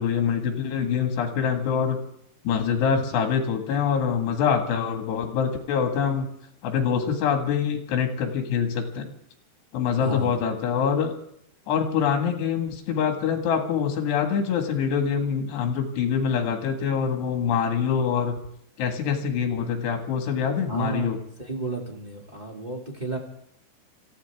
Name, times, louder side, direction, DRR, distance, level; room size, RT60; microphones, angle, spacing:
voice 1, 0.0-2.1 2.5-6.3 6.6-9.1 9.7-11.1 11.7-18.4 18.8-21.2, left 7 dB, 75° left, 4 dB, 3.9 m, -25 dB
voice 2, 10.0-10.4 20.7-23.2, right 3 dB, 30° right, -1 dB, 0.7 m, -32 dB
27.0 x 15.0 x 3.5 m, 0.71 s
omnidirectional pair, 4.9 m